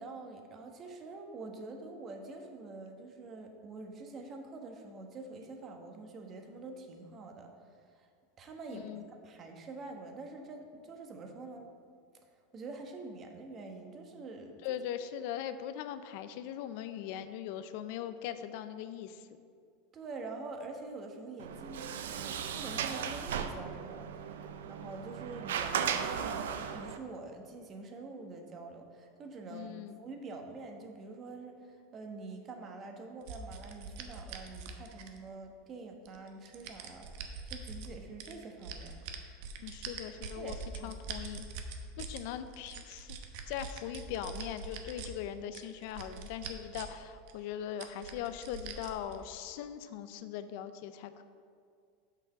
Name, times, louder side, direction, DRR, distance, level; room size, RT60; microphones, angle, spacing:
voice 1, 0.0-7.5 7.9-8.1 8.4-8.9 9.2-11.7 12.5-14.6 19.9-39.0 40.4-41.0, right 3 dB, 35° right, 3 dB, 1.3 m, -46 dB
voice 2, 8.7-9.0 14.6-19.3 29.5-30.0 39.6-40.5 40.8-41.5 42.0-43.2 43.5-51.2, left 10 dB, 65° left, 11 dB, 0.5 m, -40 dB
Sliding door, 21.4-27.0, right 7 dB, 80° right, 0.5 m, -36 dB
sound 1, 33.3-35.4 36.1-37.9 38.2-42.2 42.5-45.1 45.5-47.0 47.3-47.4 47.8-49.2, right 5 dB, 65° right, 0.9 m, -43 dB
7.0 x 5.6 x 5.9 m, 2.2 s
hypercardioid pair, 100°, 0 cm